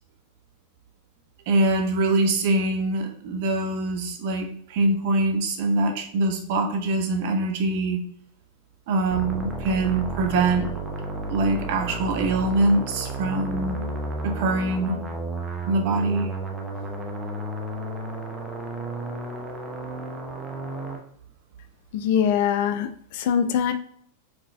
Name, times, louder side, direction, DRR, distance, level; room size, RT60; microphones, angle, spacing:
voice 1, 1.5-8.0 8.9-10.7 11.3-13.8 14.2-15.0 15.7-16.3, right 2 dB, 50° right, 4 dB, 0.6 m, -23 dB
sound 1, 9.1-21.0, right 2 dB, 15° right, 0.7 m, -32 dB
voice 2, 21.9-23.7, left 8 dB, 50° left, 10 dB, 0.3 m, -23 dB
4.6 x 3.6 x 2.2 m, 0.64 s
figure-of-eight pair, 90°, 0 cm